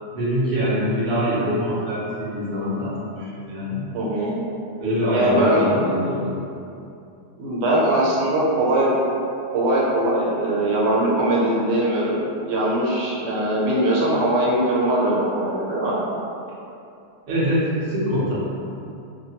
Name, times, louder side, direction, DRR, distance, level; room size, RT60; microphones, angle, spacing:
voice 1, 0.1-3.8 4.8-6.4 17.3-18.3, equal, 45° right, -10 dB, 0.8 m, -24 dB
voice 2, 3.9-4.4 5.1-5.7 7.4-8.9 9.5-16.0, right 1 dB, 90° right, -5 dB, 1.3 m, -21 dB
2.8 x 2.1 x 2.8 m, 2.6 s
omnidirectional pair, 1.8 m